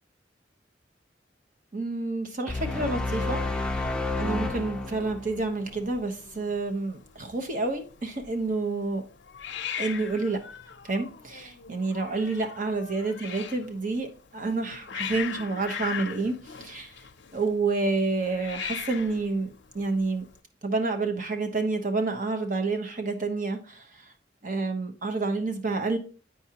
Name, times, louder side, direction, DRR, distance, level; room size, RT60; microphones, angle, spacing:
voice 1, 1.7-3.4 3.7-3.8 4.1-9.0 9.8-10.4 10.8-16.3 16.6-16.9 17.3-20.2 20.6-24.1 24.4-26.0, right 3 dB, 50° right, 1.0 m, -29 dB
sound 1, 2.5-5.8, left 2 dB, 5° left, 0.5 m, -30 dB
Hiss, 3.1-20.4, left 7 dB, 85° left, 0.6 m, -41 dB
8.8 x 4.8 x 2.9 m
head